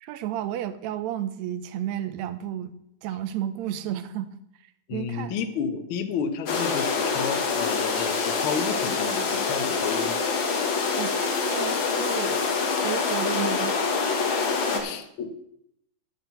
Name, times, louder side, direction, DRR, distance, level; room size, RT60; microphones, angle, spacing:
voice 1, 0.0-2.7 3.0-4.3 4.9-5.3 11.0-12.4 12.8-13.8 14.7-15.0, right 11 dB, 75° right, 11 dB, 1.7 m, -32 dB
voice 2, 4.9-10.2 14.8-15.5, left 6 dB, 85° left, 6 dB, 1.1 m, -31 dB
sound 1, 6.5-14.8, left 4 dB, 50° left, 1.5 m, -25 dB
11.5 x 4.5 x 8.0 m, 0.75 s
omnidirectional pair, 3.8 m